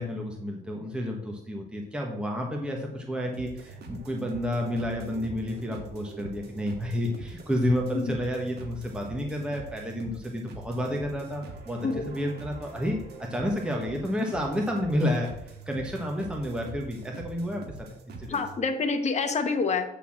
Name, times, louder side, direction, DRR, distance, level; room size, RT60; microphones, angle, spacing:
voice 1, 0.0-17.6 18.1-18.4, equal, 5° right, 0 dB, 1.2 m, -30 dB
sound 1, 3.3-18.6, right 3 dB, 70° right, 1.7 m, -44 dB
voice 2, 18.3-19.8, left 4 dB, 40° left, 6 dB, 1.2 m, -27 dB
8.1 x 4.3 x 7.1 m, 0.81 s
cardioid pair, 130°, 18 cm